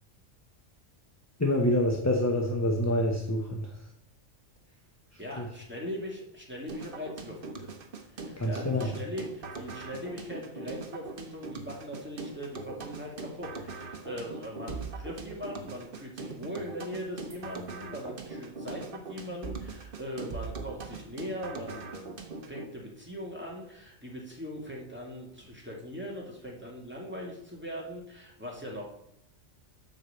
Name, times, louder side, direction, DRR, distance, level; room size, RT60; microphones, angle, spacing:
voice 1, 1.4-3.7 5.4-5.5 8.4-8.9, left 1 dB, 15° left, 1 dB, 0.9 m, -27 dB
voice 2, 5.2-7.7 8.1-22.2 22.5-28.8, equal, 10° right, -3 dB, 2.3 m, -40 dB
sound 1, 6.7-22.7, right 4 dB, 45° right, 1.1 m, -41 dB
8.1 x 4.8 x 6.8 m, 0.73 s
omnidirectional pair, 1.3 m